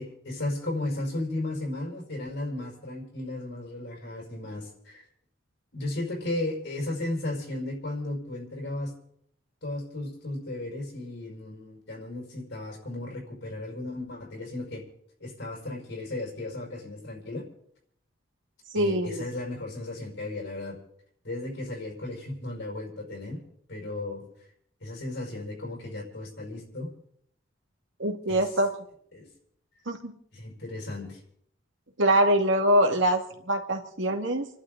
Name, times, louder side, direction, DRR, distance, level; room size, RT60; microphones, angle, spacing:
voice 1, 0.0-5.1 5.7-8.9 9.6-14.8 15.2-17.5 18.7-20.8 21.2-23.4 23.7-24.2 24.8-26.9 28.3-28.5 29.1-29.3 30.3-31.2, left 2 dB, 65° left, -2 dB, 5.4 m, -35 dB
voice 2, 18.7-19.2 28.0-28.7 29.9-30.1 32.0-34.5, right 1 dB, 65° right, 3 dB, 2.1 m, -24 dB
30.0 x 11.5 x 3.9 m, 0.69 s
head